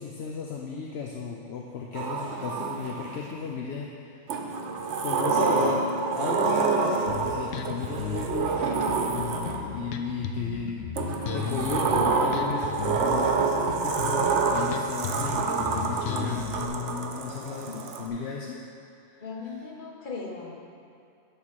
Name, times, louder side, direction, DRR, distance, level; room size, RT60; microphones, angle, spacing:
voice 1, 0.0-4.5 5.0-5.8 6.1-18.6 19.0-19.2, left 5 dB, 65° left, -1 dB, 0.9 m, -35 dB
Sliding door, 1.9-3.3 4.3-9.9 11.0-18.1, right 4 dB, 70° right, 1.0 m, -27 dB
Bass guitar, 7.1-16.7, left 6 dB, 90° left, 0.9 m, -35 dB
voice 2, 19.2-20.5, left 4 dB, 45° left, -1 dB, 1.2 m, -38 dB
11.0 x 3.7 x 6.3 m, 2.5 s
omnidirectional pair, 1.2 m